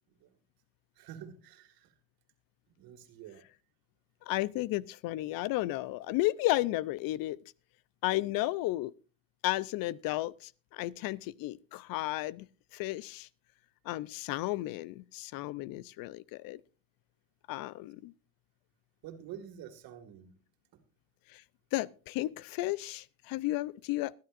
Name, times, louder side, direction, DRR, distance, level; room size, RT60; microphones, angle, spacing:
voice 1, 1.0-1.9 2.8-3.4 19.0-20.3 20.7-20.8, right 9 dB, 65° right, 2.1 m, -48 dB
voice 2, 4.3-7.4 8.0-8.9 9.4-12.5 12.7-13.3 13.8-16.6 17.5-18.1 21.3-21.4 21.7-24.1, left 17 dB, 60° left, 0.6 m, -33 dB
21.5 x 10.5 x 2.5 m
supercardioid pair, 90°, 39 cm